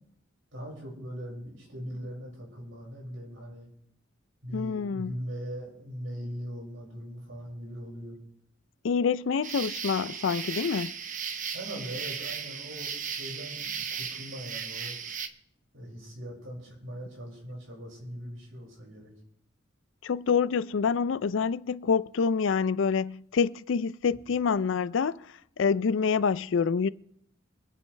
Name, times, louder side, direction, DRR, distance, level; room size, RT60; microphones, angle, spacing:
voice 1, 0.5-3.7 4.4-8.2 11.5-14.9 15.7-19.1, equal, 80° right, 5.9 m, -40 dB
voice 2, 4.5-5.1 8.8-10.9 20.0-26.9, left 5 dB, 70° left, 0.4 m, -27 dB
sound 1, 9.4-15.3, right 7 dB, 40° right, 0.9 m, -36 dB
25.0 x 9.5 x 3.3 m
head